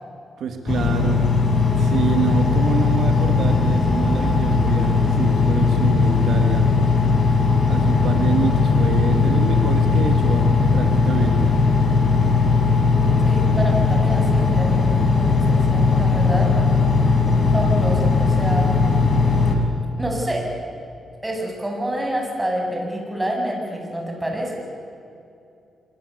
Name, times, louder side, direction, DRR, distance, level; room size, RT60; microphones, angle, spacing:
voice 1, 0.4-1.3 1.8-6.7 7.7-11.6, right 5 dB, 80° right, 6 dB, 2.2 m, -27 dB
Engine, 0.7-19.6, left 4 dB, 50° left, 5.5 m, -18 dB
voice 2, 13.2-16.5 17.5-18.7 20.0-20.5 21.2-24.5, right 1 dB, 10° right, 0 dB, 8.0 m, -27 dB
26.5 x 24.0 x 8.2 m, 2.6 s
cardioid pair, 95°, 0 cm